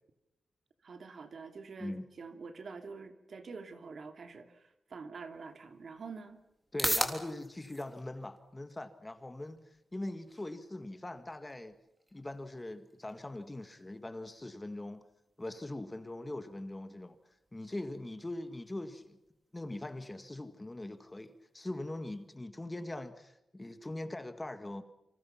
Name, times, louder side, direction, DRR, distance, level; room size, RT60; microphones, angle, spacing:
voice 1, 0.8-6.4, right 4 dB, 55° right, 7 dB, 2.8 m, -46 dB
sound 1, 5.3-22.3, right 1 dB, 15° right, 3.6 m, -44 dB
voice 2, 6.7-9.6 9.9-11.7 12.1-15.0 15.4-17.2 17.5-19.2 19.5-24.8, left 1 dB, 15° left, 9 dB, 1.8 m, -41 dB
29.0 x 26.0 x 5.9 m, 0.87 s
wide cardioid pair, 140°, 0 cm